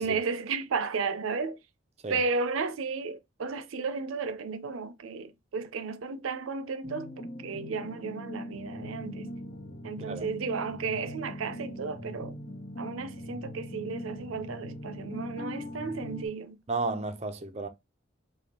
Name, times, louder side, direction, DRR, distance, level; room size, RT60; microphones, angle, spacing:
voice 1, 0.0-1.6 2.1-7.1 7.4-9.3 9.8-12.4 12.8-16.6, right 4 dB, 90° right, 0.5 m, -33 dB
sound 1, 6.8-16.3, left 1 dB, 35° left, 1.1 m, -41 dB
voice 2, 16.7-17.7, right 3 dB, 30° right, 0.5 m, -33 dB
3.4 x 2.3 x 4.2 m
head